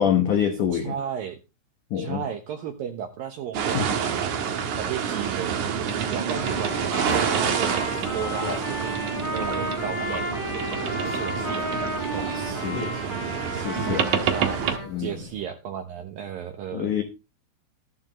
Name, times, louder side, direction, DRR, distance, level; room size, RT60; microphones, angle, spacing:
voice 1, 0.0-0.9 1.9-2.2 3.7-3.9 12.3-12.9 13.5-14.1 14.9-15.1 16.7-17.0, left 8 dB, 80° left, 6 dB, 1.8 m, -25 dB
voice 2, 0.7-1.4 1.9-5.6 6.1-9.0 9.3-11.7 12.0-12.3 13.0-13.5 14.3-17.0, right 8 dB, 85° right, 5 dB, 2.0 m, -34 dB
sound 1, 3.5-14.8, right 7 dB, 65° right, 1.9 m, -28 dB
Trumpet, 6.3-14.9, equal, 10° left, 4.5 m, -33 dB
Conversation, 6.6-15.4, left 2 dB, 30° left, 5.0 m, -42 dB
14.0 x 11.5 x 3.1 m, 0.27 s
omnidirectional pair, 5.7 m